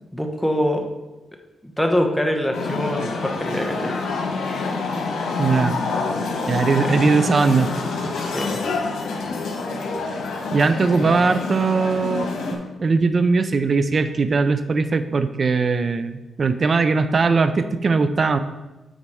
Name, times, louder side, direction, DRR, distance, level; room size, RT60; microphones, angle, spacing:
voice 1, 0.1-0.9 1.6-3.9 6.8-7.0 8.3-8.6 10.9-11.6, equal, 5° left, 3 dB, 1.0 m, -24 dB
sound 1, 2.5-12.6, left 3 dB, 90° left, 1.5 m, -27 dB
voice 2, 5.4-5.8 6.5-7.7 10.5-18.4, right 4 dB, 40° right, 11 dB, 0.5 m, -20 dB
8.6 x 4.0 x 4.8 m, 1.0 s
cardioid pair, 110°, 0 cm